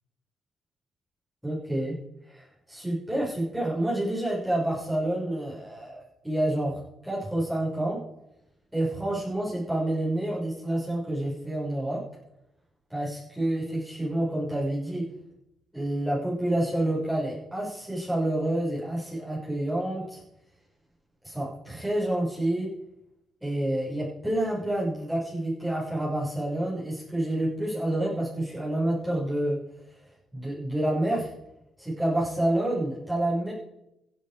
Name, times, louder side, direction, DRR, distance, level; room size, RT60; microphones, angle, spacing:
voice 1, 1.4-2.0 2.3-8.0 8.7-12.0 12.9-15.0 15.7-20.2 21.2-22.7 23.4-29.6 30.3-31.3 31.8-33.5, right 1 dB, 5° right, -7 dB, 6.0 m, -28 dB
16.5 x 7.8 x 5.0 m, 0.84 s
cardioid pair, 90°, 0 cm